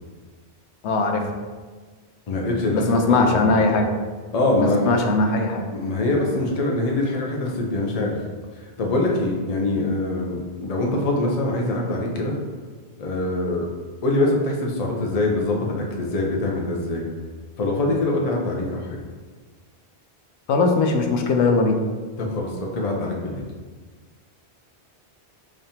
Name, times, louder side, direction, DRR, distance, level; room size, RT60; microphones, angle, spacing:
voice 1, 0.8-1.3 2.7-3.9 4.6-5.7 20.5-21.8, left 3 dB, 90° left, 4 dB, 0.9 m, -20 dB
voice 2, 2.3-3.5 4.3-5.0 5.7-8.2 8.8-12.3 13.0-13.7 14.0-17.0 17.6-19.0 22.2-23.4, left 2 dB, 45° left, -1 dB, 0.6 m, -24 dB
5.1 x 2.5 x 2.8 m, 1.4 s
omnidirectional pair, 1.1 m